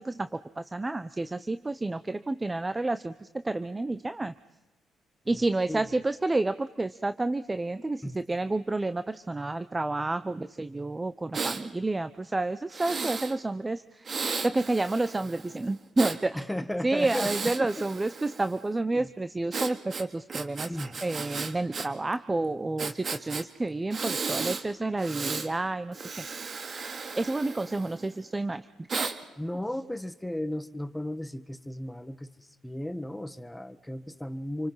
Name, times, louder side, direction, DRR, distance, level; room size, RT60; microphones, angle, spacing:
voice 1, 0.0-4.3 5.3-14.1 14.4-16.4 16.8-20.7 21.0-26.2 27.2-28.7, right 2 dB, 20° right, 13 dB, 0.7 m, -30 dB
voice 2, 5.3-5.9 8.0-8.2 16.3-17.7 18.9-19.1 20.7-21.0 29.4-32.3 32.6-34.7, left 1 dB, 5° left, 13 dB, 1.3 m, -35 dB
Breathing, 11.3-11.6 12.7-13.4 14.1-16.2 17.0-18.6 19.5-21.9 22.1-22.2 22.8-23.4 23.9-24.6 25.0-25.5 25.9-28.1 28.9-29.2, right 4 dB, 45° right, 2.1 m, -34 dB
28.0 x 24.5 x 5.6 m, 1.0 s
cardioid pair, 90°, 0 cm